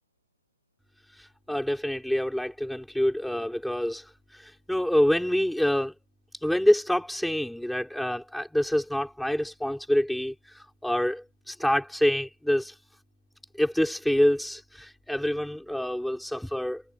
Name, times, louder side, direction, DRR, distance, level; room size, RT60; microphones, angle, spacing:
voice 1, 1.2-5.9 6.4-12.7 13.6-16.8, equal, ahead, 4.7 m, -26 dB
hypercardioid pair, 170°, 0 cm